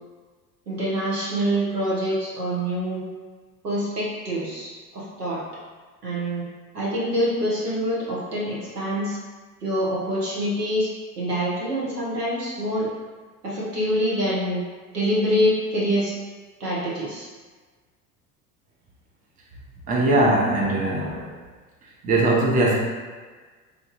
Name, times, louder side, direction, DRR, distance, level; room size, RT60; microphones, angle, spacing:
voice 1, 0.7-3.0 3.6-5.4 6.0-6.4 6.7-9.2 9.6-10.9 11.2-12.9 13.4-14.6 14.9-16.1 16.6-17.3, equal, 90° right, -7 dB, 1.1 m, -25 dB
voice 2, 19.9-21.4 22.0-22.8, right 2 dB, 20° right, -3 dB, 0.6 m, -20 dB
3.1 x 2.6 x 2.5 m, 1.4 s
figure-of-eight pair, 75°, 45 cm